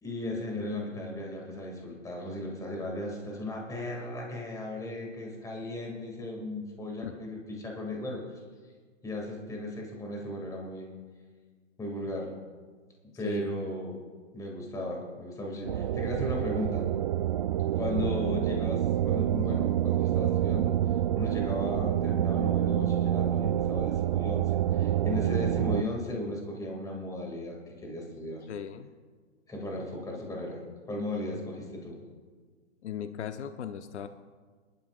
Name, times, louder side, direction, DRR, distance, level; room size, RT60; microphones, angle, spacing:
voice 1, 0.0-8.4 9.0-10.9 11.8-12.4 13.2-14.0 14.3-16.9 17.7-20.7 21.1-28.5 29.5-32.0, left 1 dB, 10° left, 0 dB, 2.3 m, -36 dB
sound 1, 15.7-25.8, right 11 dB, 35° right, 0.4 m, -27 dB
voice 2, 28.5-28.9 32.8-34.1, left 8 dB, 65° left, 9 dB, 0.9 m, -37 dB
22.5 x 12.0 x 2.5 m, 1.5 s
hypercardioid pair, 130°, 37 cm